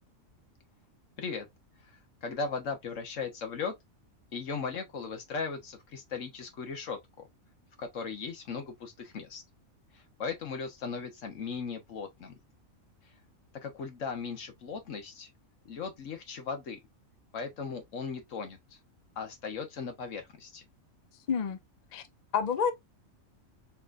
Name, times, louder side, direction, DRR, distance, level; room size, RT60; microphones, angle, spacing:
voice 1, 1.8-3.7 4.3-7.3 7.8-9.4 9.9-12.4 13.5-15.3 15.6-16.8 17.3-18.8 19.2-20.7, left 5 dB, 70° left, 1.4 m, -37 dB
voice 2, 21.3-21.6 21.9-22.0 22.3-22.7, left 6 dB, 45° left, 0.6 m, -28 dB
4.2 x 3.8 x 2.4 m
omnidirectional pair, 1.4 m